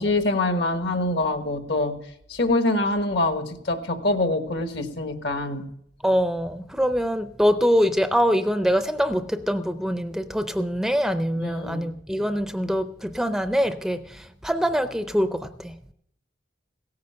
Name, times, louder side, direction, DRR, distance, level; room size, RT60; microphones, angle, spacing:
voice 1, 0.0-1.9 2.3-5.7 11.4-11.9, left 2 dB, 70° left, 7 dB, 1.4 m, -25 dB
voice 2, 6.0-15.8, equal, ahead, 10 dB, 0.4 m, -24 dB
16.5 x 9.5 x 5.7 m, 0.73 s
head